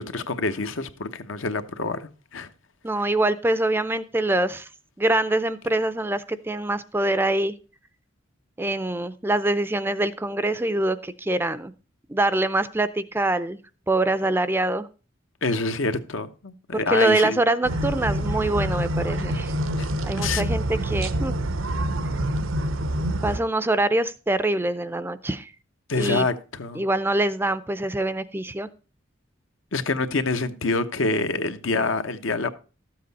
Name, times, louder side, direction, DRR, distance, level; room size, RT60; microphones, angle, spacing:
voice 1, 0.0-2.5 15.4-17.4 19.8-19.9 20.2-20.4 25.9-26.8 29.7-32.5, left 3 dB, 75° left, 1.0 m, -26 dB
voice 2, 2.8-4.7 5.0-7.5 8.6-11.7 12.1-13.6 13.9-14.9 16.7-19.5 20.0-21.3 23.2-25.5 25.9-26.3 26.7-28.7, right 2 dB, 10° right, 0.4 m, -24 dB
sound 1, 17.6-23.4, right 1 dB, 80° right, 0.8 m, -26 dB
13.0 x 7.7 x 4.0 m
head